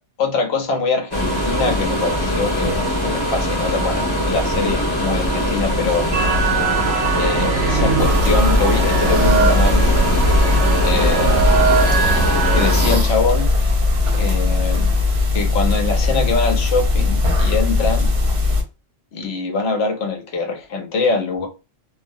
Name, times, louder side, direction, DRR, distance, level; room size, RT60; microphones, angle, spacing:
voice 1, 0.2-6.1 7.2-10.3 10.8-11.5 12.5-13.5 14.1-15.0 15.3-18.1 19.1-21.5, left 4 dB, 60° left, 0.9 m, -23 dB
sound 1, 1.1-13.0, equal, 20° left, 1.0 m, -22 dB
sound 2, 6.1-12.7, right 4 dB, 70° right, 0.8 m, -20 dB
sound 3, 8.0-18.6, left 3 dB, 50° right, 0.4 m, -19 dB
2.3 x 2.1 x 2.6 m
omnidirectional pair, 1.3 m